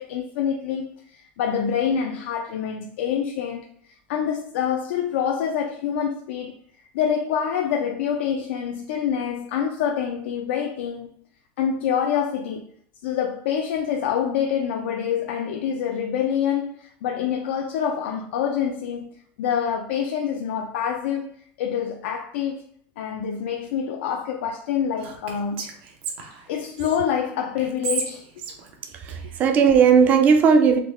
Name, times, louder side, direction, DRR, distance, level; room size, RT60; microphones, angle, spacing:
voice 1, 0.0-3.7 4.1-6.5 6.9-11.1 11.6-12.6 13.0-19.1 19.4-21.3 21.6-22.6 23.0-25.6 26.5-28.2, left 8 dB, 85° left, 0.4 m, -26 dB
Whispering, 25.0-27.0 27.6-29.7, right 5 dB, 75° right, 0.7 m, -34 dB
voice 2, 28.9-30.8, right 6 dB, 25° right, 0.4 m, -17 dB
3.6 x 2.3 x 3.1 m
supercardioid pair, 170°, 6 cm